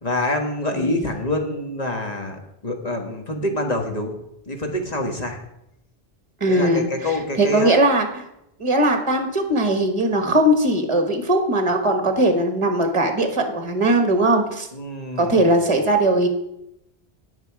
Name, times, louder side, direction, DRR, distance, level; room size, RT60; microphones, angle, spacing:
voice 1, 0.0-4.2 4.5-5.4 6.5-7.8 14.7-15.7, left 1 dB, 40° left, 3 dB, 1.7 m, -26 dB
voice 2, 0.7-1.0 6.4-7.1 7.4-8.3 8.6-14.7 15.2-16.3, right 1 dB, 30° right, 5 dB, 1.4 m, -19 dB
18.0 x 6.2 x 4.8 m, 0.83 s
omnidirectional pair, 1.1 m